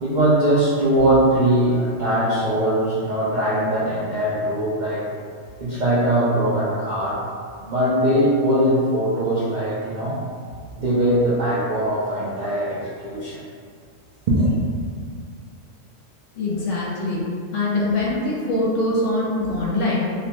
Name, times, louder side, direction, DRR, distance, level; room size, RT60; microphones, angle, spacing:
voice 1, 0.0-5.1 5.6-7.2 7.6-10.2 10.8-13.4 14.3-14.5, right 1 dB, 85° right, -8 dB, 0.4 m, -21 dB
voice 2, 16.3-17.2 17.5-20.0, left 2 dB, 70° left, -5 dB, 1.0 m, -23 dB
2.8 x 2.1 x 2.8 m, 2.1 s
omnidirectional pair, 1.4 m